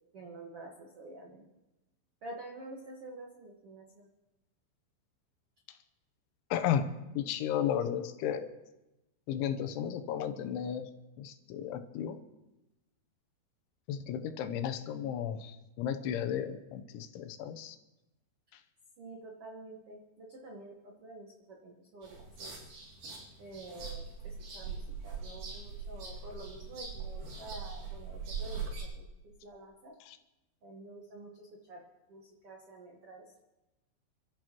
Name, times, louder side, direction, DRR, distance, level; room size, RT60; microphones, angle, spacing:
voice 1, 0.1-1.5 2.2-4.1 19.0-22.5 23.4-29.9 30.6-31.8 32.1-33.3, right 2 dB, 80° right, -1 dB, 1.2 m, -49 dB
voice 2, 6.5-6.9 7.2-8.4 9.3-10.9 11.2-12.2 13.9-17.8 30.1-30.2, left 9 dB, 90° left, 9 dB, 3.3 m, -34 dB
sound 1, 22.0-28.8, right 5 dB, 50° right, 3.6 m, -41 dB
30.0 x 13.0 x 3.1 m, 0.98 s
omnidirectional pair, 5.3 m